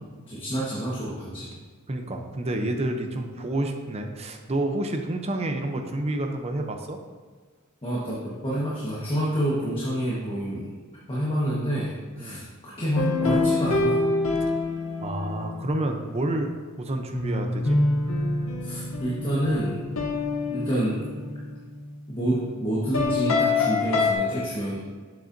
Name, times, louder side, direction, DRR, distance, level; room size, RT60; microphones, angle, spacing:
voice 1, 0.3-1.5 7.8-10.7 11.1-14.0 18.6-19.8 20.5-21.0 22.1-24.8, right 1 dB, 25° left, -7 dB, 1.3 m, -28 dB
voice 2, 1.9-7.0 12.2-12.4 15.0-16.5 16.8-17.8, right 1 dB, 30° right, 4 dB, 0.7 m, -29 dB
sound 1, 13.0-15.8 17.1-21.7 22.9-24.1, left 3 dB, 70° left, 0.9 m, -26 dB
7.5 x 7.3 x 2.7 m, 1.5 s
head